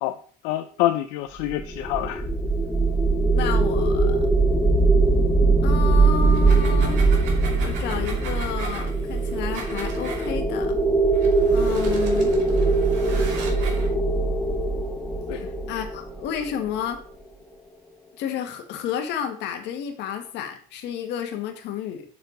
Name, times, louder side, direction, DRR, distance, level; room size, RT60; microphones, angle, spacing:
voice 1, 0.4-2.2 15.3-15.4, left 15 dB, 85° left, 8 dB, 0.6 m, -26 dB
sound 1, 1.5-16.7, right 3 dB, 5° left, 0.8 m, -21 dB
voice 2, 3.3-4.2 5.6-7.1 7.6-10.8 11.5-12.3 15.3-17.0 18.2-22.0, left 8 dB, 60° left, 5 dB, 1.7 m, -31 dB
sound 2, 6.2-10.3 11.1-13.9, right 4 dB, 65° right, 2.8 m, -39 dB
6.9 x 6.8 x 4.0 m, 0.43 s
cardioid pair, 125°, 20 cm